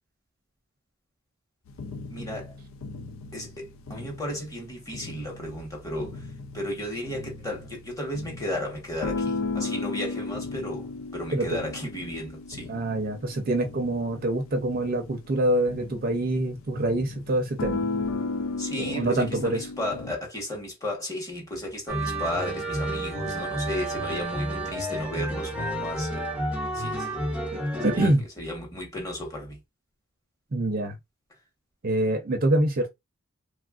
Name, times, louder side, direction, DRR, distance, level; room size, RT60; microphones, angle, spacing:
sound 1, 1.7-20.1, left 3 dB, 75° left, 0.4 m, -36 dB
voice 1, 2.1-2.5 3.3-6.2 6.5-10.9 11.1-12.7 18.6-26.3 26.7-27.1 27.9-28.1 28.4-29.6, left 1 dB, 15° left, 1.1 m, -34 dB
voice 2, 12.7-17.8 18.8-19.6 26.9-27.0 27.5-28.2 30.5-30.9 31.8-32.9, right 1 dB, 45° right, 0.5 m, -25 dB
sound 2, 21.9-28.1, right 1 dB, 5° right, 0.7 m, -30 dB
3.2 x 2.3 x 2.3 m
head